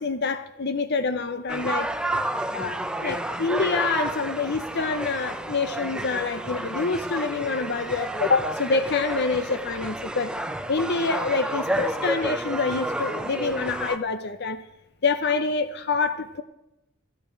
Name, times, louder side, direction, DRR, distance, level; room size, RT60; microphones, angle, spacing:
voice 1, 0.0-1.9 2.5-10.3 10.7-14.6 15.0-16.4, left 4 dB, 50° left, 11 dB, 0.7 m, -26 dB
sound 1, 1.5-14.0, right 1 dB, 5° right, 0.6 m, -30 dB
14.0 x 12.5 x 6.3 m, 0.90 s
head